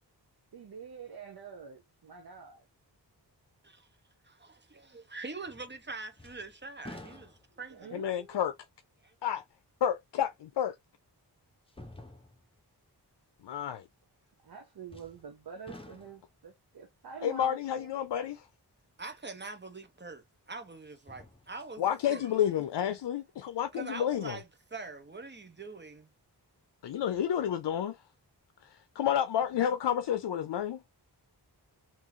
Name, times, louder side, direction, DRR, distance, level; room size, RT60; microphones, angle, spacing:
voice 1, 0.5-2.6 7.7-8.5 14.4-17.9, right 6 dB, 60° right, 0.8 m, -47 dB
voice 2, 4.2-8.0 9.0-9.1 19.0-22.5 23.7-26.1, right 3 dB, 25° right, 1.0 m, -44 dB
sound 1, 5.5-5.9 6.2-7.7 8.4-8.5 10.3-10.4 11.7-12.6 14.9-15.3 15.7-16.4 19.4-19.5 20.9-21.8 22.2-22.3, left 1 dB, 15° left, 1.0 m, -50 dB
voice 3, 7.9-8.5 9.2-9.4 9.8-10.8 13.4-13.8 17.2-18.5 21.8-24.4 26.8-28.0 29.0-30.8, left 9 dB, 80° left, 0.5 m, -30 dB
3.7 x 2.8 x 2.8 m
wide cardioid pair, 100°, 41 cm